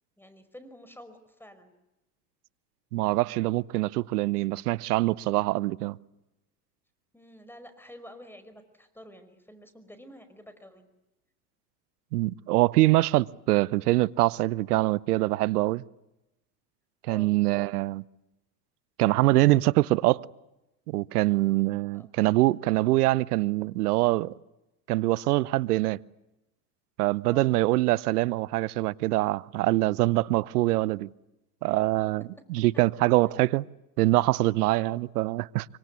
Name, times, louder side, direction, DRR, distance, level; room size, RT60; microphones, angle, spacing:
voice 1, 0.2-1.7 7.1-10.9 17.0-17.3 21.9-22.1 27.2-27.5 33.2-33.6 34.6-35.0, equal, 5° left, 5.2 m, -49 dB
voice 2, 2.9-6.0 12.1-15.8 17.1-18.0 19.0-20.2 20.9-24.3 24.9-26.0 27.0-31.1 31.6-32.2 32.5-33.6 34.0-35.7, right 18 dB, 80° right, 0.9 m, -24 dB
25.0 x 25.0 x 8.4 m
hypercardioid pair, 80°, 45 cm